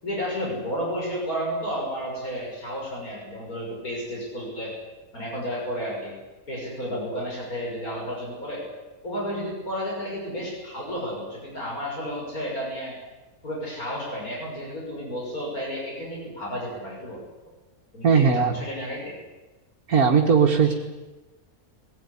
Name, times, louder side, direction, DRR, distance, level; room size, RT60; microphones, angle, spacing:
voice 1, 0.0-4.7 5.1-6.1 6.5-8.6 9.0-13.0 13.4-17.2 17.9-19.1 20.6-20.7, equal, 80° left, -3 dB, 6.8 m, -32 dB
voice 2, 18.0-18.5 19.9-20.7, right 6 dB, 80° right, 0 dB, 2.2 m, -18 dB
21.0 x 18.5 x 10.0 m, 1.2 s
omnidirectional pair, 1.5 m